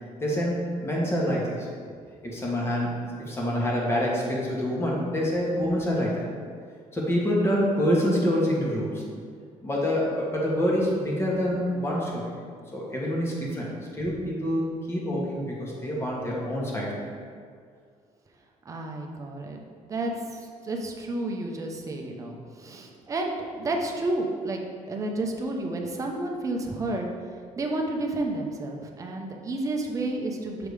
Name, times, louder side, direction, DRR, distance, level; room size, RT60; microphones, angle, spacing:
voice 1, 0.2-1.7 2.2-6.2 6.9-9.0 9.6-12.2 12.7-13.7 13.9-17.0, equal, 20° left, -4 dB, 1.3 m, -26 dB
voice 2, 18.7-19.6 19.9-24.6 24.9-27.1 27.6-30.7, right 2 dB, 25° right, 1 dB, 0.7 m, -31 dB
6.8 x 3.6 x 4.8 m, 2.1 s
cardioid pair, 150°, 13 cm